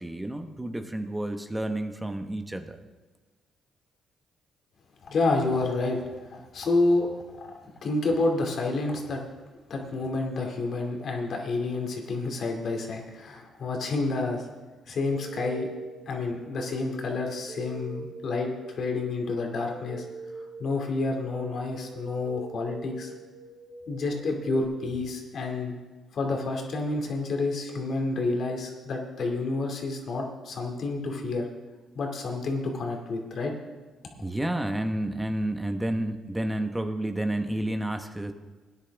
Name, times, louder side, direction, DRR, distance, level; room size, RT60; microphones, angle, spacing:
voice 1, 0.0-2.8 7.6-7.7 34.2-38.3, right 1 dB, 10° right, 6 dB, 1.1 m, -30 dB
voice 2, 5.0-7.1 7.4-7.5 7.8-9.2 9.7-14.5 14.9-15.7 16.1-18.5 18.8-20.1 20.6-23.1 23.9-25.8 26.1-31.5 32.0-33.5, left 3 dB, 60° left, 2 dB, 2.4 m, -29 dB
sound 1, 15.1-24.6, right 3 dB, 65° right, 3.3 m, -44 dB
18.5 x 10.0 x 3.5 m, 1.3 s
cardioid pair, 90°, 0 cm